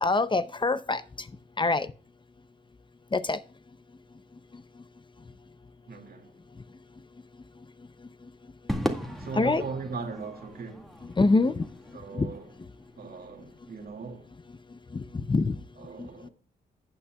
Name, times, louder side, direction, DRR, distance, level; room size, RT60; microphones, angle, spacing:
voice 1, 0.0-1.3 1.6-1.9 3.1-3.4 4.5-4.6 8.0-8.3 8.8-9.6 11.0-12.3 12.6-12.7 14.7-15.6 16.0-16.3, left 3 dB, 30° left, 0.6 m, -27 dB
voice 2, 5.9-6.3 9.2-10.9 11.9-12.4 13.0-14.3 15.8-16.3, right 4 dB, 60° right, 2.1 m, -39 dB
Crowd / Fireworks, 8.7-13.2, equal, ahead, 1.9 m, -37 dB
15.0 x 8.7 x 2.3 m
cardioid pair, 85°, 17 cm